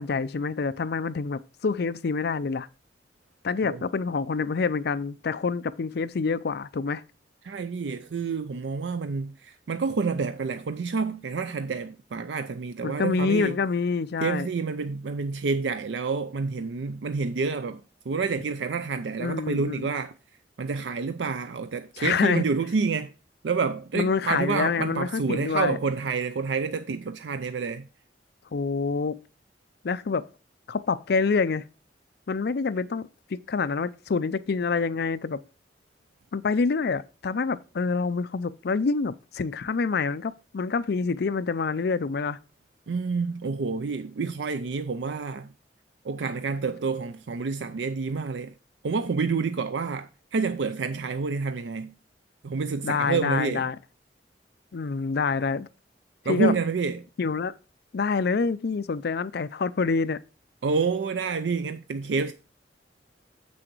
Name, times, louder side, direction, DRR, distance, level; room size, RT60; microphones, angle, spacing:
voice 1, 0.0-2.7 3.4-7.0 12.8-14.5 19.2-19.9 22.0-22.4 23.9-25.8 28.5-29.2 29.8-30.3 30.7-31.6 32.3-35.4 36.3-42.4 52.8-53.8 54.7-55.7 56.3-56.5 57.2-57.5 57.9-60.2, left 4 dB, 60° left, 0.5 m, -27 dB
voice 2, 7.4-13.6 14.2-20.1 20.6-23.1 23.4-27.9 42.9-45.5 46.0-48.5 48.8-51.9 52.4-53.7 56.3-57.0 60.6-62.3, right 4 dB, 85° right, 0.5 m, -28 dB
7.7 x 6.3 x 4.5 m
head